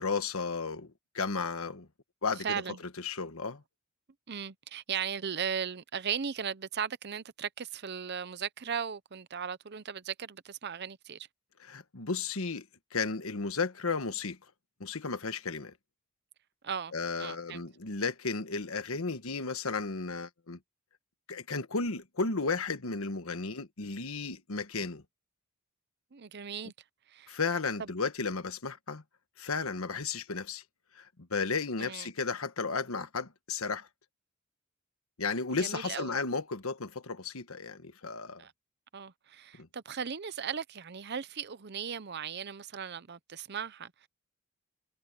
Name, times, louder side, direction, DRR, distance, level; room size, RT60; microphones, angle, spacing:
voice 1, 0.0-1.9 2.2-2.6 3.0-3.6 11.6-12.7 12.9-14.4 14.8-15.7 16.9-20.6 21.3-25.0 27.3-29.0 29.4-30.6 30.9-33.9 35.2-38.4 39.6-39.7, left 4 dB, 85° left, 1.4 m, -34 dB
voice 2, 2.4-2.8 4.3-11.3 16.6-17.6 26.1-26.7 27.1-27.4 27.8-27.9 31.8-32.1 35.6-36.2 38.4-38.5 38.9-44.1, right 7 dB, 50° right, 0.7 m, -37 dB
head